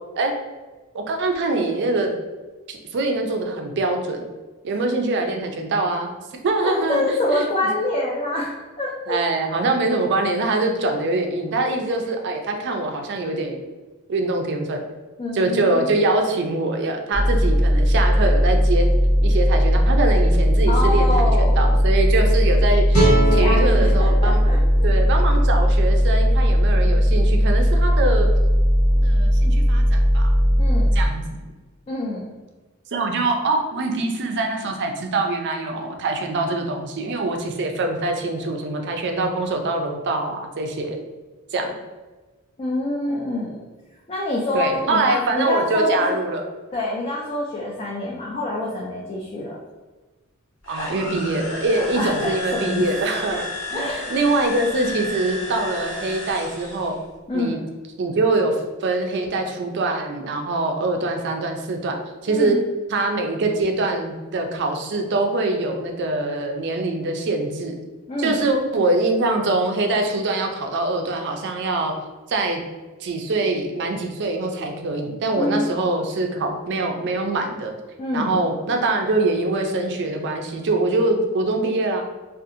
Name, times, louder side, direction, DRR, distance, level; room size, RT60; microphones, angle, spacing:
voice 1, 0.9-2.1 2.7-4.2 4.6-6.1 6.4-7.0 7.3-7.5 9.1-13.6 14.1-14.8 15.3-18.9 19.2-21.3 21.6-24.5 24.8-28.3 29.0-31.5 32.9-41.0 41.5-41.7 44.5-46.4 50.7-53.4 53.7-56.9 57.3-57.6 58.0-61.9 62.2-62.6 62.9-67.7 68.2-71.9 72.3-72.6 73.0-77.7 78.1-82.0, right 2 dB, 55° right, 4 dB, 0.4 m, -24 dB
voice 2, 6.6-9.2 15.2-15.9 20.7-21.8 23.3-24.6 30.6-30.9 31.9-32.3 42.6-43.6 44.1-46.2 46.7-49.6 51.8-52.8 53.3-53.4 53.7-54.0 57.3-57.6 62.3-62.7 68.1-68.4 75.4-75.8 78.0-78.5, left 1 dB, 25° left, -3 dB, 0.3 m, -26 dB
sound 1, 17.1-31.1, equal, 15° right, 0.6 m, -17 dB
sound 2, 22.9-26.1, right 2 dB, 80° left, 1.3 m, -25 dB
sound 3, 50.6-57.0, left 2 dB, 60° left, 0.8 m, -33 dB
2.6 x 2.4 x 2.5 m, 1.2 s
head